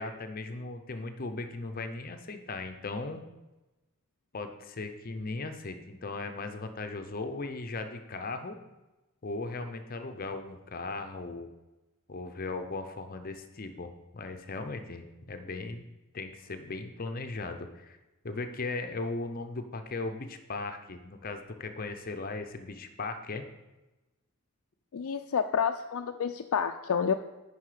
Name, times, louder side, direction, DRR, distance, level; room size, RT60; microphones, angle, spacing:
voice 1, 0.0-3.2 4.3-8.6 9.2-11.5 12.1-15.9 16.1-18.0 18.2-23.4, left 3 dB, 40° left, 7 dB, 0.7 m, -37 dB
voice 2, 24.9-27.1, left 7 dB, 70° left, 6 dB, 0.4 m, -29 dB
9.7 x 5.5 x 5.0 m, 1.0 s
head